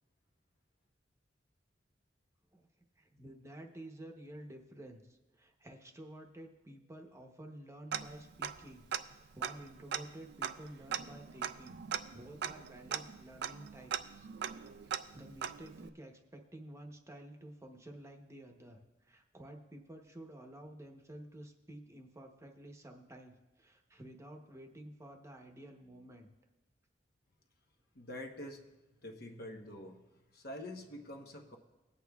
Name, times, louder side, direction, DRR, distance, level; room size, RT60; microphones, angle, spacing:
voice 1, 3.0-11.8 12.1-26.3, right 1 dB, 15° right, 2 dB, 0.8 m, -52 dB
Tick-tock, 7.9-8.7 8.9-9.0 9.4-15.9, right 8 dB, 65° right, 0.4 m, -40 dB
voice 2, 27.9-28.8 29.0-30.0 30.3-31.6, left 1 dB, 55° left, 3 dB, 1.0 m, -46 dB
20.5 x 8.3 x 2.3 m, 1.1 s
head